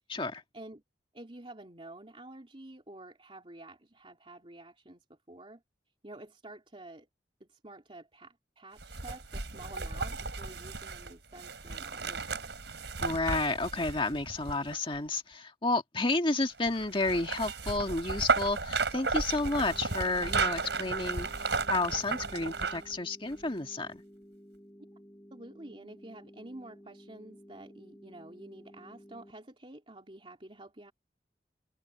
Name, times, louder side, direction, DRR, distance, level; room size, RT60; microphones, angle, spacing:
voice 1, 0.1-0.4 13.0-21.4 21.7-24.0, left 2 dB, 30° left, 1.8 m, -31 dB
voice 2, 1.1-5.6 6.0-7.1 7.4-12.5 25.3-30.9, right 2 dB, 30° right, 3.2 m, -49 dB
sound 1, 8.8-15.0 16.6-22.9 23.3-23.4, right 4 dB, 80° right, 4.5 m, -34 dB
sound 2, 19.3-29.3, equal, 15° left, 5.0 m, -54 dB
head